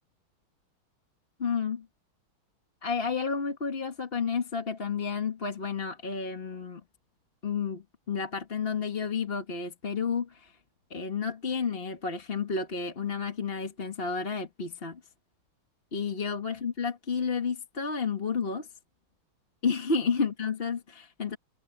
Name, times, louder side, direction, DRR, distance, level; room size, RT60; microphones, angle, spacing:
voice 1, 1.4-1.9 2.8-6.8 7.4-10.6 10.9-15.0 15.9-18.7 19.6-21.4, left 5 dB, 30° left, 1.6 m, -31 dB
omnidirectional pair, 2.4 m